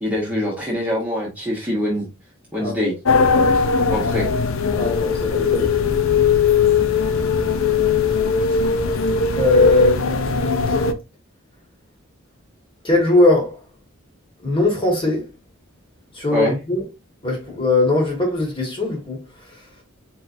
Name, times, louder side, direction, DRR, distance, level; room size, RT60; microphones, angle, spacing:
voice 1, 0.0-2.1 2.5-2.9 3.9-4.3 16.3-16.6, equal, 5° right, 1.0 m, -23 dB
sound 1, 3.0-10.9, left 4 dB, 70° left, 0.6 m, -19 dB
voice 2, 4.7-5.9 9.4-10.8 12.8-13.5 14.4-15.3 16.1-16.8 17.2-19.2, left 3 dB, 25° left, 1.5 m, -20 dB
4.4 x 3.8 x 2.6 m
head